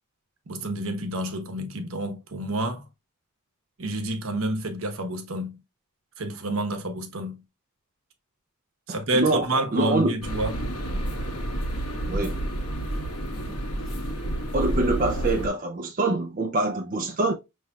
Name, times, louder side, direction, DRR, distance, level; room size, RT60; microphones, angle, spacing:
voice 1, 0.5-2.9 3.8-5.6 6.2-7.4 8.9-10.6, right 1 dB, 70° right, 0.9 m, -29 dB
voice 2, 9.1-9.5 9.7-10.1 12.1-12.4 13.5-13.6 14.5-17.3, right 2 dB, 35° right, 0.5 m, -25 dB
Tramway underground, 10.2-15.5, right 1 dB, 85° left, 1.3 m, -29 dB
5.6 x 3.1 x 2.2 m
head